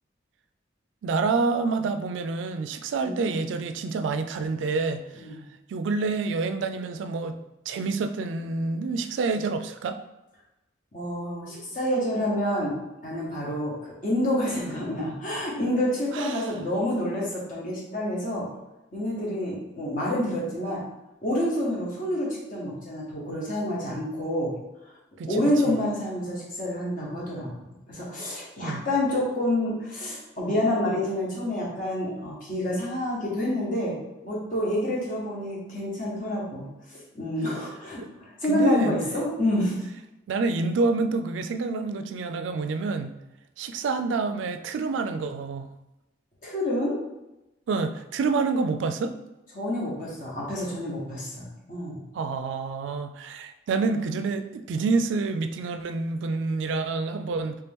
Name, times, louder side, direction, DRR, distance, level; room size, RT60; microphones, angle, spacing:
voice 1, 1.0-5.3 5.7-7.4 7.7-10.0 16.1-16.5 25.2-25.8 28.6-28.8 38.0-38.1 38.5-38.9 40.3-43.1 43.6-45.7 47.7-49.1 52.1-57.6, right 4 dB, 85° right, 9 dB, 0.3 m, -28 dB
voice 2, 10.9-12.7 13.0-18.5 18.9-20.8 21.2-24.5 25.3-27.5 27.9-33.9 34.2-39.8 46.4-47.0 49.5-52.0, left 1 dB, 45° left, -5 dB, 1.2 m, -28 dB
3.3 x 2.9 x 3.5 m, 0.95 s
head